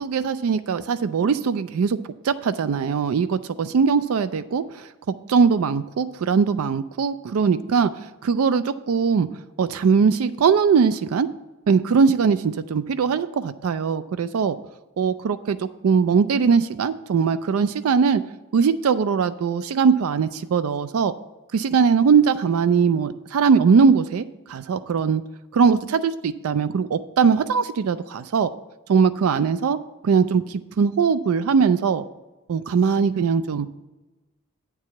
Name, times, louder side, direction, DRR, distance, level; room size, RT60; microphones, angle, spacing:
voice 1, 0.0-2.0 2.2-4.9 5.3-7.9 8.2-9.3 9.6-11.3 11.7-14.6 15.0-18.2 18.5-21.1 21.5-25.2 25.5-28.5 28.9-29.8 30.0-32.0 32.5-33.7, right 6 dB, 80° right, 12 dB, 0.4 m, -20 dB
8.7 x 4.7 x 6.9 m, 1.1 s
head